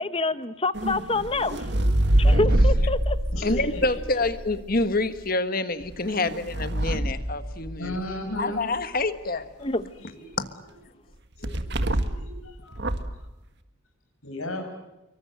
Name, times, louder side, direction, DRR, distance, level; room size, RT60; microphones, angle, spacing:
voice 1, 0.0-1.6 2.1-3.2 9.6-9.8, left 3 dB, 25° left, 1.0 m, -26 dB
sound 1, 0.7-4.8 5.8-8.1 11.4-12.3 12.7-13.2, right 1 dB, 50° right, 1.7 m, -25 dB
voice 2, 1.4-2.1 2.7-2.8 3.3-4.2 7.8-8.7 10.0-10.4 11.4-12.9 14.2-14.7, left 1 dB, 90° left, 6.6 m, -36 dB
voice 3, 3.4-8.0 8.4-9.5 10.4-10.5, left 2 dB, 45° left, 1.5 m, -27 dB
26.0 x 23.5 x 7.8 m
head